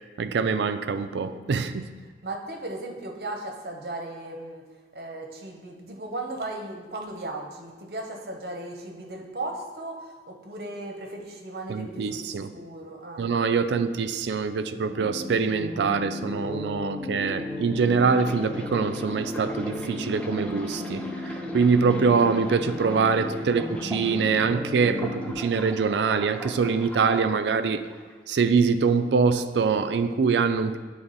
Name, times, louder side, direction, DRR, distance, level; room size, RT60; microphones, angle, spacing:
voice 1, 0.2-1.9 11.7-12.5 13.2-27.9 28.3-30.8, right 5 dB, 80° right, 11 dB, 0.4 m, -24 dB
voice 2, 2.2-4.6 4.9-13.3, right 2 dB, 60° right, 2 dB, 0.8 m, -36 dB
sound 1, 14.9-25.3, left 2 dB, 35° left, 2.1 m, -35 dB
sound 2, 17.9-24.4 24.8-27.2 27.9-28.1, left 1 dB, 5° left, 0.4 m, -40 dB
9.1 x 3.4 x 4.0 m, 1.4 s
head